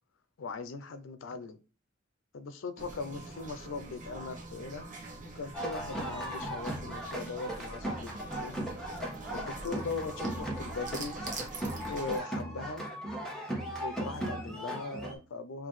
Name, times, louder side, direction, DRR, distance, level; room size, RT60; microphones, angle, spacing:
voice 1, 0.4-1.6 2.3-4.9 5.3-8.6 9.3-11.2 11.9-12.8 13.8-15.7, left 4 dB, 85° left, 0.5 m, -39 dB
sound 1, 2.8-12.2, right 3 dB, 40° right, 0.9 m, -44 dB
sound 2, 5.5-15.1, right 1 dB, ahead, 1.2 m, -37 dB
5.8 x 2.5 x 3.1 m
head